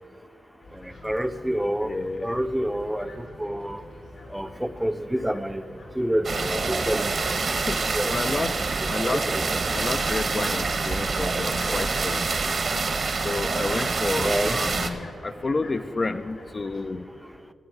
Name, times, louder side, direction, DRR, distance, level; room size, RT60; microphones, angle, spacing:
sound 1, 0.6-16.9, left 1 dB, 80° left, 2.3 m, -47 dB
voice 1, 1.0-3.8 4.3-5.6 6.0-7.2 7.5-7.6 7.9-8.5 8.8-9.4 14.2-14.6, equal, 5° right, 11 dB, 0.6 m, -28 dB
voice 2, 1.8-2.4 7.7-7.8 8.1-8.6 8.9-9.3 9.7-12.3 13.2-17.1, left 3 dB, 40° left, 9 dB, 0.4 m, -30 dB
sound 2, 6.2-14.9, right 4 dB, 60° right, 1.1 m, -26 dB
18.5 x 7.6 x 4.7 m, 2.8 s
cardioid pair, 55°, 0 cm